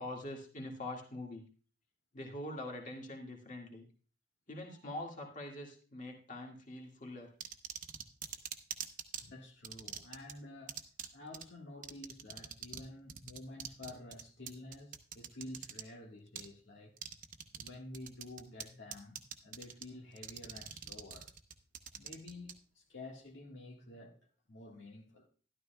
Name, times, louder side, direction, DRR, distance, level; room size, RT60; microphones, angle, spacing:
voice 1, 0.0-1.5 2.1-3.9 4.5-7.3, left 1 dB, 45° left, 2.0 m, -44 dB
sound 1, 7.4-9.2 9.6-10.3 10.7-11.1 11.3-11.4 11.8-12.8 13.1-15.8 16.4-16.5 17.0-17.7 17.9-18.6 18.9-19.8 20.2-22.5, right 8 dB, 45° right, 0.8 m, -43 dB
voice 2, 9.2-10.8 11.1-16.9 17.6-21.3 22.0-25.3, left 2 dB, 75° left, 1.7 m, -50 dB
12.5 x 12.0 x 2.3 m
head